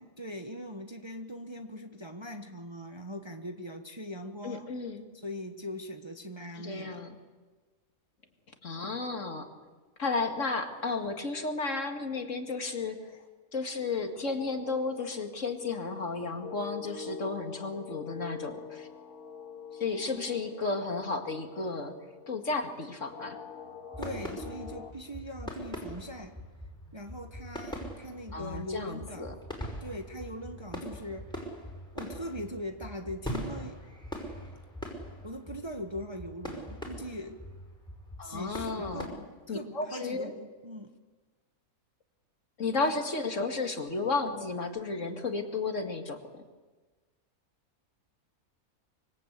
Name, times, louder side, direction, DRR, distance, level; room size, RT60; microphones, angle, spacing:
voice 1, 0.0-4.7 5.2-7.0 24.0-26.4 26.9-29.4 29.8-31.3 31.9-33.8 35.2-37.4 38.2-39.2 39.5-41.0 42.8-42.9, equal, 20° right, 5 dB, 1.2 m, -41 dB
voice 2, 4.4-5.0 6.6-7.2 8.6-9.5 10.0-13.2 13.5-18.9 19.8-22.0 22.3-23.4 28.3-29.3 38.2-39.2 39.5-40.3 42.6-46.2, left 3 dB, 55° left, 5 dB, 2.5 m, -33 dB
sound 1, 14.1-24.9, left 7 dB, 70° left, 2.3 m, -46 dB
sound 2, 23.9-39.1, equal, 5° left, 5.4 m, -42 dB
25.5 x 24.5 x 8.4 m, 1.3 s
omnidirectional pair, 1.6 m